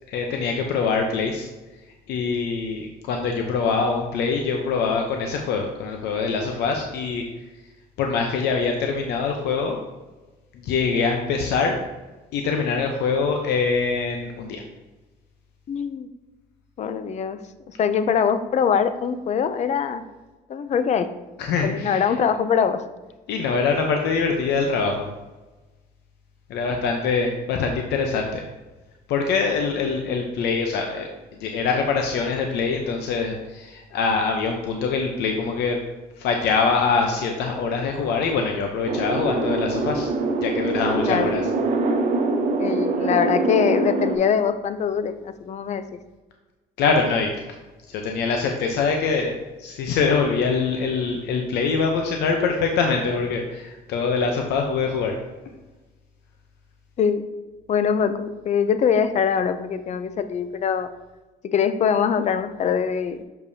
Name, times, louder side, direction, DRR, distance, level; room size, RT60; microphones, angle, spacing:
voice 1, 0.1-1.5 2.1-7.2 8.0-9.8 10.6-11.8 12.3-14.6 21.4-22.1 23.3-25.1 26.5-28.4 29.1-31.1 31.4-35.8 36.2-40.1 40.4-41.4 46.8-47.3 47.9-55.1, left 5 dB, 80° left, 3 dB, 0.7 m, -24 dB
voice 2, 15.7-16.1 16.8-17.4 17.7-20.0 20.5-21.1 21.6-22.9 41.1-41.3 42.6-45.8 57.0-57.3 57.7-60.9 61.4-63.2, left 7 dB, 45° left, 11 dB, 0.5 m, -23 dB
sound 1, 38.9-44.2, right 3 dB, 45° right, 0.8 m, -24 dB
6.8 x 5.2 x 2.7 m, 1.1 s
cardioid pair, 110°, 17 cm